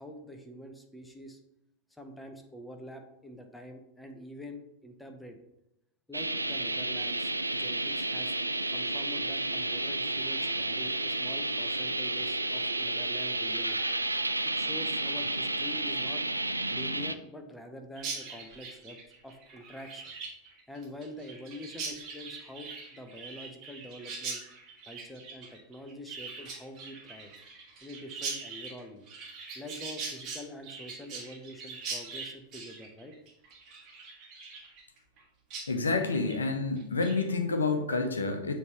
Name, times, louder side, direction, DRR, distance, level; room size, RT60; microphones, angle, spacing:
voice 1, 0.0-1.4 2.0-5.4 6.1-8.3 8.7-13.8 14.4-16.2 16.7-19.0 19.2-20.1 20.7-24.4 24.9-27.3 27.8-29.1 29.5-33.1, left 1 dB, 5° left, 4 dB, 0.8 m, -45 dB
sound 1, 6.1-17.2, right 2 dB, 85° right, 0.3 m, -31 dB
Chirp tweet, 18.0-35.2 35.5-35.7 36.0-36.4 36.8-37.2, right 4 dB, 35° right, 1.5 m, -42 dB
voice 2, 35.7-38.6, left 3 dB, 75° left, 6 dB, 0.8 m, -29 dB
6.9 x 3.3 x 4.3 m, 0.84 s
figure-of-eight pair, 90°, 0 cm